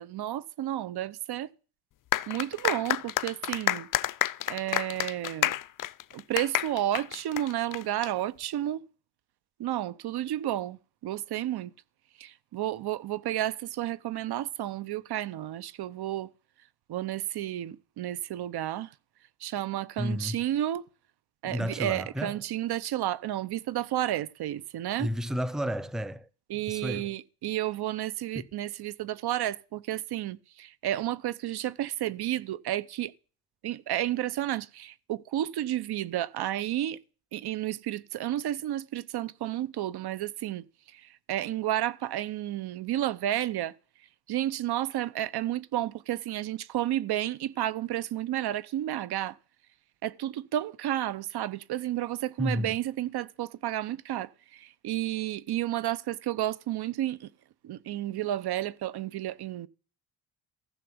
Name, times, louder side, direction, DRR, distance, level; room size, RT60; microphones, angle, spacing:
voice 1, 0.0-1.5 2.3-3.9 4.5-5.5 6.1-8.8 9.6-11.7 12.2-16.3 16.9-18.9 19.4-20.8 21.4-25.1 26.5-33.1 33.6-37.0 37.3-40.6 40.9-43.7 44.3-49.4 50.0-57.3 57.6-59.7, right 13 dB, 65° right, 0.9 m, -31 dB
sound 1, 2.1-8.1, left 13 dB, 50° left, 0.6 m, -29 dB
voice 2, 20.0-20.4 21.4-22.4 25.0-26.3 26.7-27.1 28.3-28.5 52.4-52.8, equal, ahead, 0.7 m, -32 dB
15.0 x 6.9 x 7.9 m
cardioid pair, 120°, 41 cm